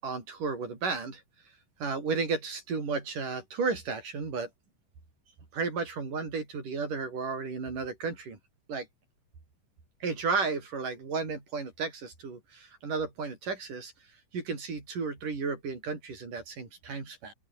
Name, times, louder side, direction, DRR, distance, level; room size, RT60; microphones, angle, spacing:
voice 1, 0.0-1.2 1.8-4.5 5.5-8.4 8.7-8.9 10.0-13.9 14.3-17.3, right 4 dB, 75° right, 7.6 m, -33 dB
open air
omnidirectional pair, 3.8 m